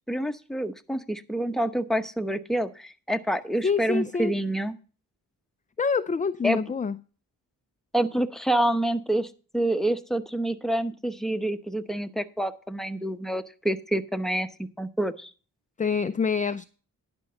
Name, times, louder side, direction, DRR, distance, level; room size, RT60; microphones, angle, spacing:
voice 1, 0.1-4.8 6.4-6.6 7.9-15.3, right 1 dB, ahead, 0.9 m, -27 dB
voice 2, 3.6-4.3 5.8-7.0 15.8-16.7, left 5 dB, 20° left, 0.4 m, -26 dB
11.0 x 5.3 x 6.7 m
cardioid pair, 45°, 40 cm